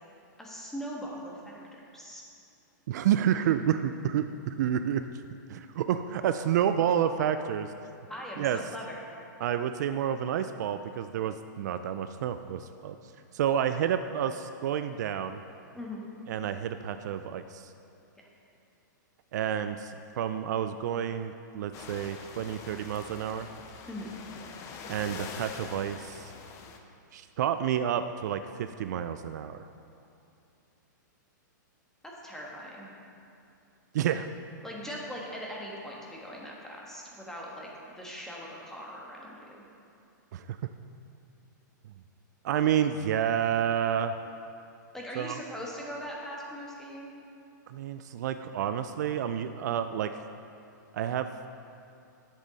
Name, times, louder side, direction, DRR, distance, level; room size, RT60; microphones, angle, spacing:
voice 1, 0.4-1.6 1.9-2.2 8.1-9.0 15.7-16.1 23.9-24.1 32.0-32.9 34.6-39.6 44.9-47.1, equal, 5° left, -3 dB, 1.4 m, -40 dB
voice 2, 2.9-5.0 5.5-7.7 8.4-8.6 9.4-13.0 13.3-15.4 16.3-17.7 19.3-23.5 24.9-26.3 27.1-29.6 33.9-34.3 40.3-40.6 42.4-44.1 45.2-45.4 47.7-50.2 50.9-51.3, right 9 dB, 60° right, 9 dB, 0.4 m, -29 dB
sound 1, 21.7-26.8, left 5 dB, 30° left, 0.7 m, -44 dB
10.5 x 7.4 x 4.0 m, 2.6 s
hypercardioid pair, 145°, 10 cm